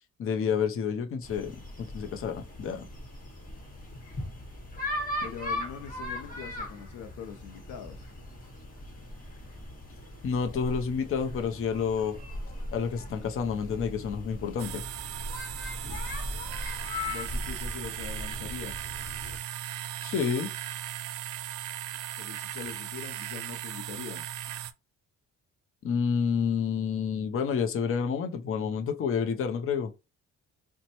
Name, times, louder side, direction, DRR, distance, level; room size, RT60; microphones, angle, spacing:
voice 1, 0.2-1.6 1.9-2.9 10.2-12.2 12.7-14.8 20.0-20.5 25.8-29.9, left 6 dB, 45° left, 0.6 m, -29 dB
sound 1, 1.2-19.4, left 1 dB, 30° left, 1.4 m, -39 dB
voice 2, 5.2-8.0 17.1-18.8 22.2-24.3, left 7 dB, 85° left, 0.6 m, -42 dB
sound 2, 14.6-24.7, right 12 dB, 80° right, 0.4 m, -38 dB
4.1 x 2.2 x 2.9 m
cardioid pair, 90°, 30 cm